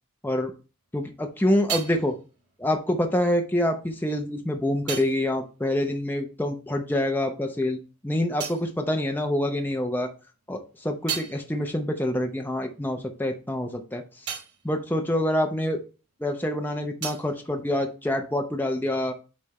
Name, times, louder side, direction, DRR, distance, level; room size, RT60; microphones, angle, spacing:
voice 1, 0.9-2.1 2.6-10.1 10.5-14.3 14.6-15.8 16.2-19.1, left 1 dB, 10° left, 3 dB, 0.7 m, -26 dB
sound 1, 0.9-6.9 7.1-9.8 10.2-16.3 16.5-18.6, right 8 dB, 90° right, 2.9 m, -40 dB
8.4 x 3.3 x 4.2 m, 0.34 s
head